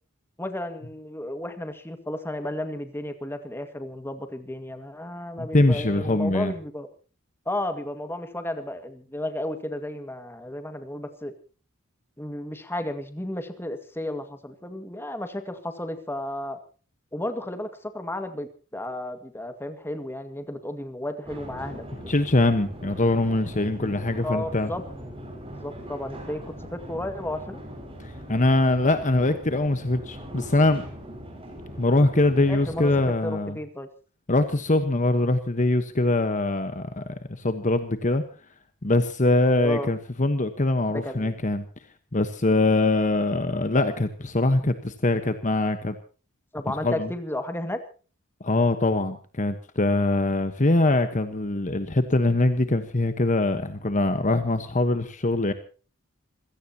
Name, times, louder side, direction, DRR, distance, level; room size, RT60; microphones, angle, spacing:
voice 1, 0.4-6.9 7.5-11.3 12.2-16.6 17.1-21.8 24.2-24.8 25.4-27.6 32.5-32.9 33.2-33.9 39.6-39.9 40.9-41.4 46.5-47.8, left 1 dB, 10° left, 7 dB, 1.9 m, -33 dB
voice 2, 5.4-6.5 22.1-24.7 28.0-30.8 31.8-33.6 34.3-38.2 38.8-41.6 42.1-46.0 46.8-47.1 48.4-55.5, left 2 dB, 35° left, 9 dB, 1.2 m, -23 dB
sound 1, 21.2-33.1, equal, 25° right, 6.2 m, -40 dB
26.5 x 17.0 x 2.9 m, 0.37 s
head